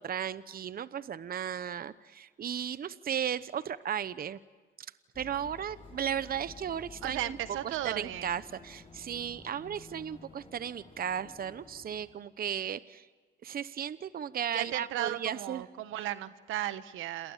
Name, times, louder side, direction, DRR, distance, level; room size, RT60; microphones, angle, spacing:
voice 1, 0.0-4.4 4.8-4.9 5.2-7.4 7.6-13.1 13.4-15.6, right 9 dB, 50° right, 15 dB, 0.9 m, -35 dB
sound 1, 5.1-12.1, left 3 dB, 30° left, 5.0 m, -52 dB
voice 2, 7.0-8.3 14.5-17.3, right 13 dB, 90° right, 13 dB, 1.2 m, -35 dB
29.0 x 28.0 x 7.4 m, 1.3 s
cardioid pair, 90°, 20 cm